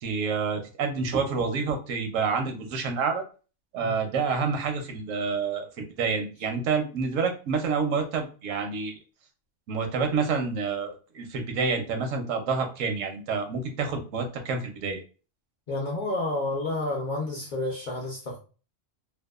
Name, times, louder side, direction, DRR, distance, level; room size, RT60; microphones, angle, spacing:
voice 1, 0.0-3.2 3.7-9.0 9.7-15.0, right 5 dB, 80° right, 5 dB, 1.0 m, -28 dB
voice 2, 15.7-18.4, left 2 dB, 50° left, -2 dB, 0.6 m, -30 dB
2.7 x 2.2 x 2.3 m, 0.35 s
omnidirectional pair, 1.3 m